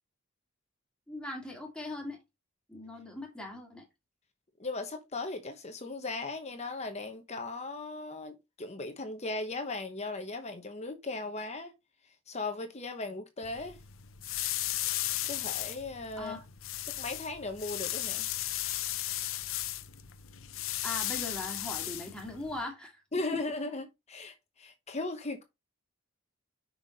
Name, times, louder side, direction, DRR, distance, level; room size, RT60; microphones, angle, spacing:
voice 1, 1.1-2.2 2.7-3.8 16.2-16.4 20.8-23.0, left 2 dB, 5° left, 2.3 m, -40 dB
voice 2, 4.6-11.7 12.3-13.8 15.3-16.4 16.8-18.3 23.1-25.4, left 3 dB, 30° left, 1.0 m, -37 dB
sound 1, 13.4-22.6, left 14 dB, 70° left, 0.7 m, -36 dB
5.8 x 5.5 x 4.1 m
head